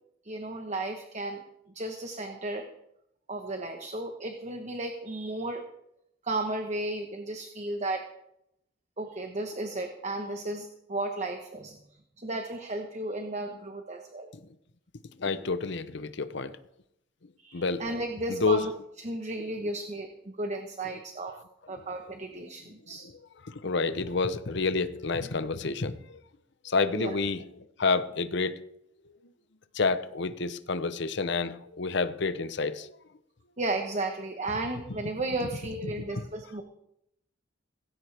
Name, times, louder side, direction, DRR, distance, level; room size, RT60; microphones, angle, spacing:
voice 1, 0.2-1.4 1.7-2.6 3.3-5.7 6.2-8.0 9.0-11.8 12.2-14.3 17.4-18.7 19.0-21.3 21.7-23.0 26.9-27.1 33.6-36.6, right 2 dB, 35° right, 4 dB, 1.2 m, -34 dB
voice 2, 15.2-16.6 17.5-17.8 18.3-18.6 23.5-26.2 26.6-27.4 27.8-28.5 29.7-32.9 36.2-36.3, left 4 dB, 65° left, 12 dB, 0.8 m, -29 dB
18.0 x 16.0 x 3.5 m, 0.80 s
head